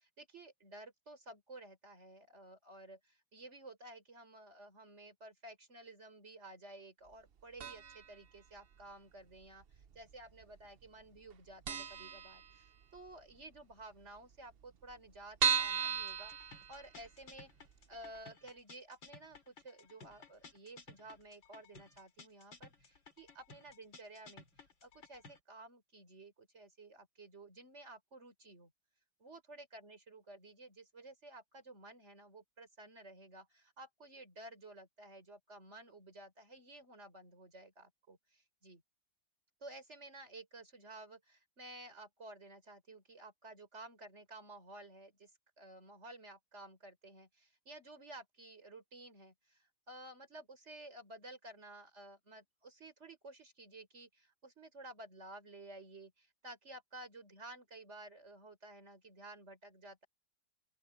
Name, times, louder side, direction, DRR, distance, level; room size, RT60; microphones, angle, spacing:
voice 1, 0.0-17.5 17.9-24.5 24.8-28.7 29.2-38.2 38.6-38.8 39.6-45.3 45.6-60.1, right 2 dB, 35° right, 4.6 m, -53 dB
sound 1, 7.6-8.1 8.4-8.5 9.4-10.1 10.4-10.6 10.9-11.0 11.3-11.4 11.7-13.0 13.4-13.5 13.7-13.8 14.0-14.1 14.6-17.2 17.7-17.8 18.2-18.3, right 7 dB, 70° right, 0.5 m, -36 dB
sound 2, 16.1-25.4, left 4 dB, 85° left, 4.8 m, -57 dB
open air
omnidirectional pair, 2.0 m